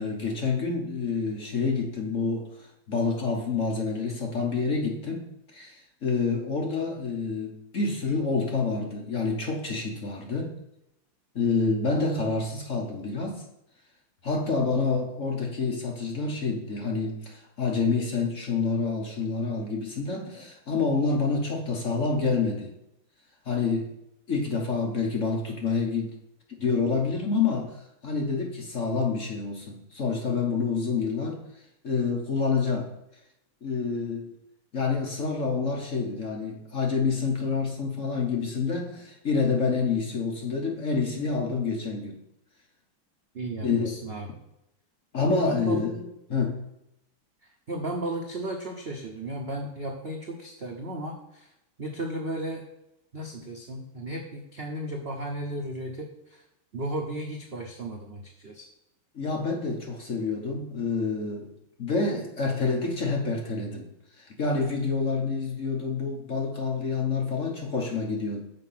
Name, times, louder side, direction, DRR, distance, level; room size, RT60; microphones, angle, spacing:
voice 1, 0.0-5.3 5.5-10.5 11.3-13.4 14.2-22.7 23.5-23.9 24.3-26.1 26.6-31.4 31.8-32.9 33.6-34.3 34.7-42.2 43.6-43.9 45.1-45.9 46.3-46.6 59.1-61.5 61.8-63.9 64.2-68.4, left 4 dB, 45° left, 0 dB, 1.1 m, -28 dB
voice 2, 43.3-44.3 45.4-45.8 47.7-51.5 51.8-52.6 53.1-56.4 56.7-58.7, right 1 dB, 75° right, 1 dB, 0.5 m, -34 dB
6.7 x 5.1 x 5.7 m, 0.83 s
omnidirectional pair, 2.4 m